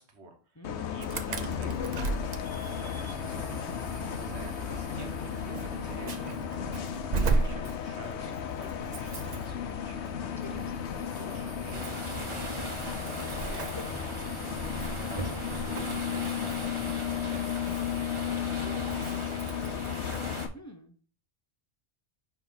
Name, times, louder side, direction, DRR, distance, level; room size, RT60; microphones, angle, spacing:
voice 1, 0.0-2.3 2.6-3.5 4.2-10.1 11.1-13.7 14.0-20.2, right 3 dB, 80° right, 4 dB, 1.5 m, -50 dB
Bus, 0.6-20.5, left 9 dB, 85° left, 1.0 m, -34 dB
voice 2, 0.6-0.9 10.4-10.9 20.5-21.0, equal, 25° left, 5 dB, 0.4 m, -48 dB
Insect / Alarm, 1.0-20.5, right 3 dB, 45° right, 0.6 m, -38 dB
sound 1, 11.7-20.5, right 2 dB, 30° right, 1.1 m, -40 dB
5.4 x 4.7 x 3.9 m, 0.42 s
omnidirectional pair, 1.1 m